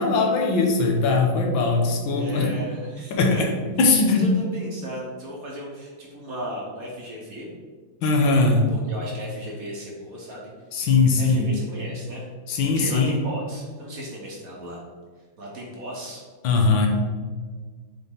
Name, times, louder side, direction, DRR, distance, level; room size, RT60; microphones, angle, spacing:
voice 1, 0.0-2.5 3.1-3.5 3.8-4.3 8.0-8.7 10.7-11.5 12.5-13.2 16.4-16.9, left 3 dB, 75° left, 2 dB, 1.6 m, -20 dB
voice 2, 2.1-3.4 3.8-7.5 8.7-10.5 11.2-12.2 12.8-14.8 15.4-16.2, equal, 50° right, -3 dB, 1.3 m, -36 dB
7.1 x 3.4 x 3.9 m, 1.5 s
omnidirectional pair, 2.3 m